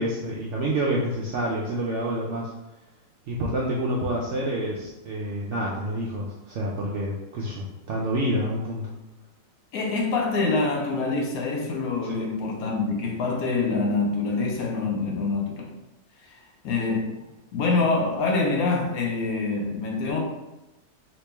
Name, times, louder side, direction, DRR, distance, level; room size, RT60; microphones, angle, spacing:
voice 1, 0.0-2.5 3.3-8.9 12.2-12.3, right 1 dB, 70° right, -3 dB, 0.7 m, -28 dB
voice 2, 9.7-15.7 16.3-16.4 16.6-17.1 17.5-20.2, left 3 dB, 70° left, 0 dB, 1.1 m, -25 dB
3.0 x 3.0 x 3.3 m, 0.96 s
omnidirectional pair, 1.7 m